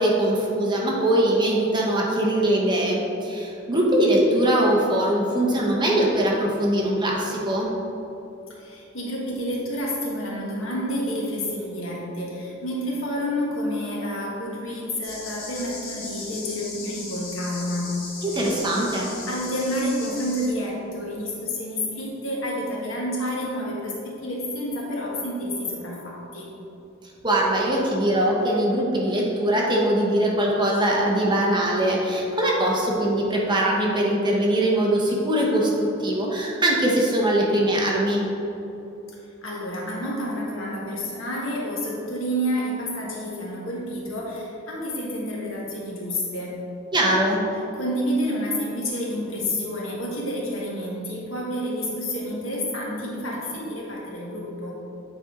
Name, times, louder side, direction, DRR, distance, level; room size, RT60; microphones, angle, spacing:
voice 1, 0.0-7.7 18.2-19.1 27.2-38.3 46.9-47.4, right 1 dB, 25° right, -3 dB, 1.1 m, -22 dB
voice 2, 8.5-18.0 19.3-26.5 39.4-46.6 47.7-54.8, equal, 75° left, -3 dB, 1.5 m, -29 dB
sound 1, 15.0-20.5, left 3 dB, 90° left, 1.4 m, -37 dB
9.0 x 4.3 x 3.8 m, 3.0 s
head